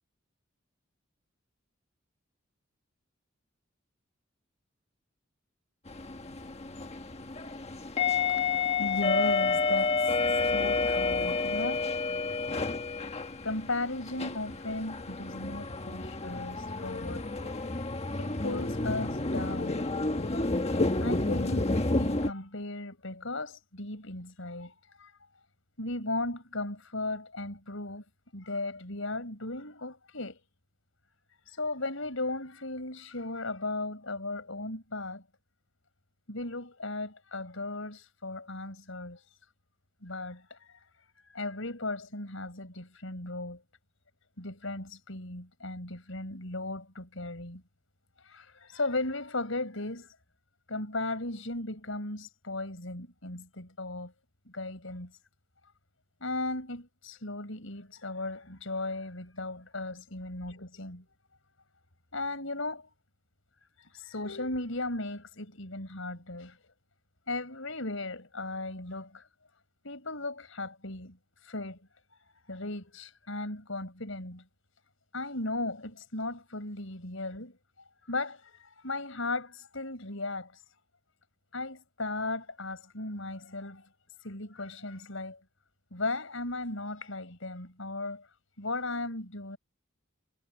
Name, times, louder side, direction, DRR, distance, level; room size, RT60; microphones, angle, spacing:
sound 1, 5.9-22.3, left 3 dB, 30° left, 1.5 m, -30 dB
voice 1, 8.1-10.1 10.5-11.9 13.4-17.5 18.2-19.9 21.0-25.1 25.8-28.0 28.3-30.4 31.5-35.2 36.3-39.2 40.0-40.8 41.3-43.6 44.4-47.6 48.2-50.1 50.7-54.1 54.5-55.1 56.2-61.0 62.1-62.9 63.8-66.6 67.3-69.2 69.8-71.2 71.4-71.9 72.5-74.4 75.1-77.6 78.1-80.5 81.5-83.8 84.2-85.4 85.9-88.3 88.6-89.6, left 2 dB, 70° left, 6.1 m, -36 dB
head